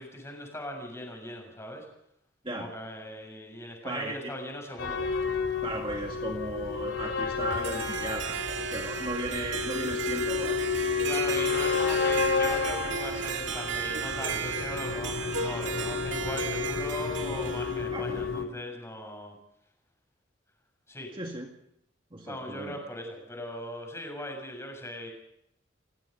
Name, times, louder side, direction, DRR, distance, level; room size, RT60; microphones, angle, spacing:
voice 1, 0.0-1.9 2.5-5.1 11.0-19.4 20.9-21.2 22.2-25.1, left 1 dB, 15° left, 3 dB, 7.0 m, -39 dB
voice 2, 3.8-4.3 5.6-10.7 17.9-18.3 21.1-21.5 22.1-22.8, right 1 dB, 25° right, 1 dB, 2.0 m, -36 dB
sound 1, 4.8-18.4, left 5 dB, 75° left, 3.3 m, -31 dB
Harp, 7.4-17.9, right 7 dB, 75° right, 1.8 m, -35 dB
28.5 x 17.5 x 5.4 m, 0.77 s
head